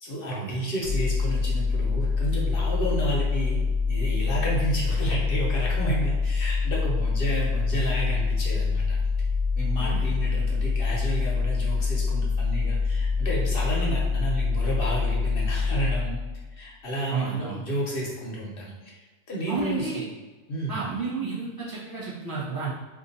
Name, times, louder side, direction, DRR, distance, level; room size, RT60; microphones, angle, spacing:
voice 1, 0.0-3.6 3.9-9.0 9.6-16.2 16.6-19.9 20.5-20.9, right 1 dB, 55° left, -3 dB, 0.7 m, -31 dB
sound 1, 0.8-16.6, left 4 dB, 85° right, 1.0 m, -25 dB
voice 2, 9.8-10.1 17.1-17.6 19.5-20.1 20.7-22.7, right 4 dB, 35° left, -8 dB, 0.3 m, -32 dB
2.6 x 2.5 x 4.0 m, 1.3 s
omnidirectional pair, 1.4 m